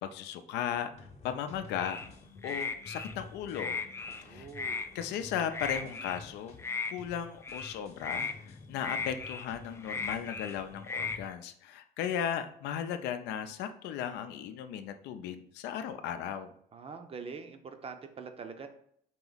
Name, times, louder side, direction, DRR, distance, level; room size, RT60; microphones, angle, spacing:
voice 1, 0.0-2.0 2.4-3.8 4.3-4.5 4.9-6.6 6.9-16.5, left 9 dB, 90° left, 9 dB, 0.5 m, -36 dB
sound 1, 0.9-11.3, left 4 dB, 40° left, 0.9 m, -51 dB
sound 2, 1.8-2.1 2.4-3.1 3.5-4.2 4.5-4.9 5.5-6.2 6.6-6.9 7.4-7.7 8.0-8.3 8.8-9.4 9.8-10.5 10.8-11.2, left 4 dB, 15° left, 0.3 m, -36 dB
voice 2, 4.1-4.9 16.7-18.7, right 5 dB, 35° right, 7 dB, 0.6 m, -44 dB
4.5 x 3.0 x 4.0 m, 0.66 s
cardioid pair, 110°, 17 cm